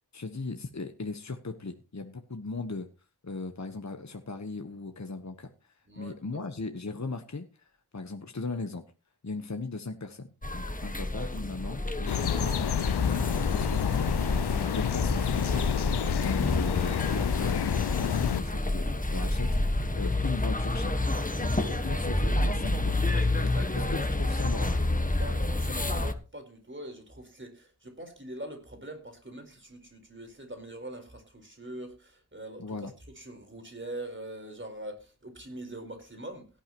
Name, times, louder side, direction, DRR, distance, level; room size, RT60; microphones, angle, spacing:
voice 1, 0.1-2.9 3.2-8.8 9.2-10.3 10.5-13.1 13.5-15.9 16.2-21.1 21.4-23.1 23.7-24.8 32.6-32.9, left 3 dB, 45° left, 1.2 m, -38 dB
voice 2, 5.9-6.4 21.7-22.0 23.1-24.0 25.1-32.9 33.2-36.5, right 1 dB, 30° right, 4.4 m, -43 dB
sound 1, 10.4-26.1, left 2 dB, 20° left, 1.5 m, -29 dB
sound 2, 12.1-18.4, left 10 dB, 80° left, 0.5 m, -29 dB
17.0 x 11.5 x 3.0 m
wide cardioid pair, 55°, 39 cm